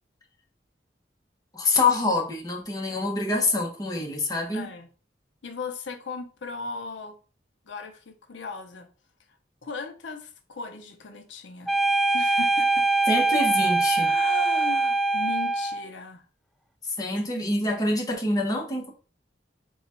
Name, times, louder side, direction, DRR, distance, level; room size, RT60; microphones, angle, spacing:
voice 1, 1.5-4.7 13.1-14.1 17.0-18.9, left 2 dB, 20° left, 0.9 m, -26 dB
voice 2, 4.5-4.9 5.4-7.2 7.7-8.9 9.6-11.7 12.1-12.9 14.0-16.3, left 3 dB, 90° left, 0.6 m, -37 dB
sound 1, 11.7-15.9, right 3 dB, ahead, 0.3 m, -23 dB
3.8 x 2.3 x 4.3 m
head